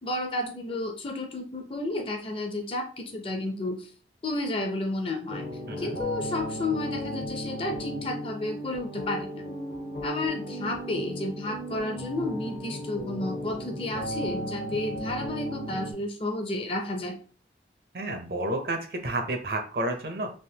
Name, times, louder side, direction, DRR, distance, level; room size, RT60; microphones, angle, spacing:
voice 1, 0.0-3.9 4.2-5.4 5.8-9.4 10.0-17.2, left 2 dB, 30° left, 4 dB, 0.5 m, -32 dB
sound 1, 5.3-15.9, equal, 70° left, 1.1 m, -35 dB
voice 2, 5.7-6.0 17.9-20.3, right 1 dB, 55° right, 5 dB, 0.6 m, -30 dB
3.4 x 2.5 x 2.8 m, 0.39 s
head